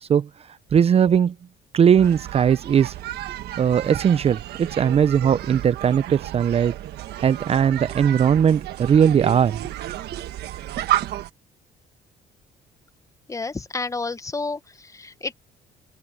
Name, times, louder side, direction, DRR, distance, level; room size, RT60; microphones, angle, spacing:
voice 1, 0.7-1.3 1.7-2.9 3.6-6.8 7.2-9.6 10.1-10.2, right 8 dB, 35° right, 0.6 m, -19 dB
sound 1, 1.9-11.3, right 13 dB, 75° right, 1.5 m, -32 dB
voice 2, 13.3-15.4, left 3 dB, 20° left, 1.2 m, -30 dB
open air
cardioid pair, 110°, 17 cm